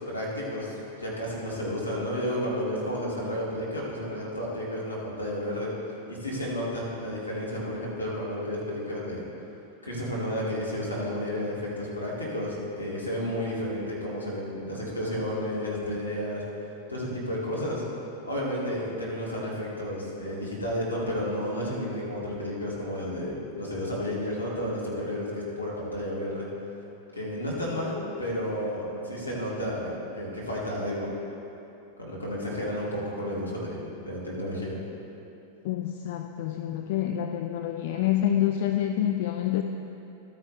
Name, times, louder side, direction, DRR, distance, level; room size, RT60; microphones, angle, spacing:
voice 1, 0.1-5.7 6.1-9.2 9.8-16.4 16.9-17.8 18.2-26.5 27.1-31.1 32.0-34.8, equal, 85° left, -6 dB, 2.3 m, -32 dB
voice 2, 35.6-39.6, left 11 dB, 50° left, 5 dB, 0.4 m, -27 dB
12.5 x 9.4 x 3.3 m, 2.9 s
figure-of-eight pair, 90°, 0 cm